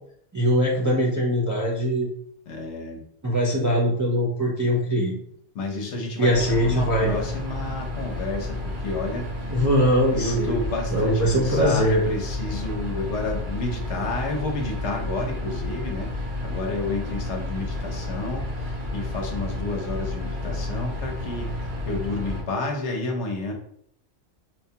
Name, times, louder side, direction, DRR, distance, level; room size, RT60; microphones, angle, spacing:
voice 1, 0.3-2.1 3.2-5.2 6.2-7.1 9.5-10.6 10.9-12.0, equal, 25° right, -3 dB, 0.4 m, -22 dB
voice 2, 2.5-3.0 5.5-9.6 10.1-23.5, left 2 dB, 70° left, 1 dB, 1.0 m, -30 dB
sound 1, 6.3-22.4, left 1 dB, 75° right, 1.9 m, -31 dB
4.5 x 2.3 x 2.8 m, 0.67 s
omnidirectional pair, 1.3 m